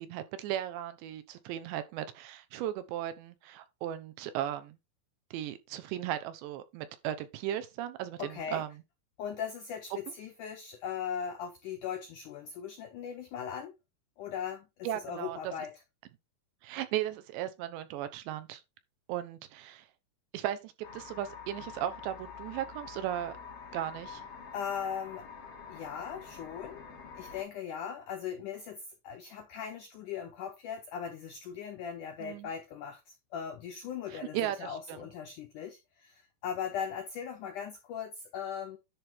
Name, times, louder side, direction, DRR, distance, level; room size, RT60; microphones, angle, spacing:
voice 1, 0.0-4.8 5.3-8.8 14.8-15.5 16.6-18.6 19.1-19.9 20.3-23.3 23.7-24.3 32.2-32.5 34.1-35.1, right 12 dB, 85° right, 3.2 m, -36 dB
voice 2, 8.2-8.6 9.2-13.7 14.2-15.7 24.5-25.2 25.7-26.8 27.2-28.8 29.0-38.8, left 8 dB, 85° left, 1.8 m, -39 dB
sound 1, 20.8-27.4, left 6 dB, 65° left, 1.6 m, -47 dB
10.5 x 3.5 x 4.4 m
omnidirectional pair, 5.0 m